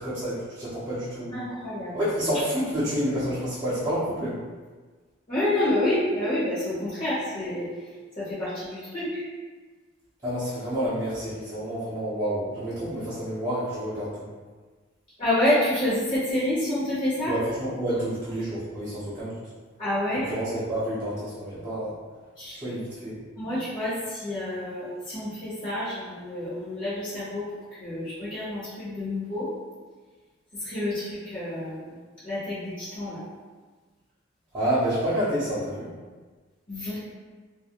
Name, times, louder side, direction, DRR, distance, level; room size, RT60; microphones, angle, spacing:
voice 1, 0.0-1.3 1.9-4.4 10.2-14.3 17.2-19.4 20.1-22.0 22.6-23.2 34.5-35.9, equal, 20° right, -14 dB, 0.5 m, -29 dB
voice 2, 1.3-1.9 5.3-7.7 8.2-9.2 15.2-17.3 19.8-20.3 22.4-22.6 23.4-27.4 27.8-29.5 30.6-31.9 32.2-33.2 36.7-37.0, left 1 dB, 45° left, -11 dB, 0.9 m, -28 dB
2.4 x 2.0 x 2.8 m, 1.4 s
head